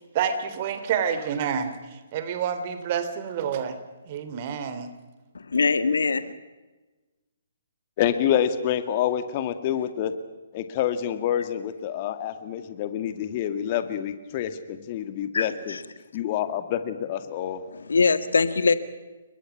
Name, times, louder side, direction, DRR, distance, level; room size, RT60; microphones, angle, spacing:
voice 1, 0.0-1.7 2.1-3.8 4.0-4.9, right 7 dB, 35° right, 10 dB, 3.3 m, -28 dB
voice 2, 5.5-6.3 15.3-15.8 17.9-18.7, left 4 dB, 70° left, 12 dB, 1.7 m, -22 dB
voice 3, 8.0-10.1 10.5-15.8 16.1-17.6, left 10 dB, 35° left, 10 dB, 2.0 m, -27 dB
30.0 x 23.0 x 5.9 m, 1.2 s
figure-of-eight pair, 130°, 0 cm